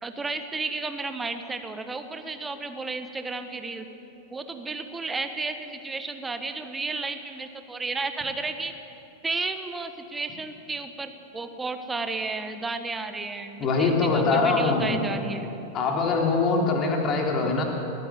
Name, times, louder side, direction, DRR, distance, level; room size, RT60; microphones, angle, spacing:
voice 1, 0.0-3.9 4.3-8.7 9.2-15.5, right 3 dB, 10° right, 8 dB, 1.4 m, -32 dB
voice 2, 13.6-15.0 15.7-17.6, left 4 dB, 30° left, 1 dB, 3.5 m, -23 dB
19.5 x 15.5 x 8.6 m, 2.9 s
figure-of-eight pair, 90°, 0 cm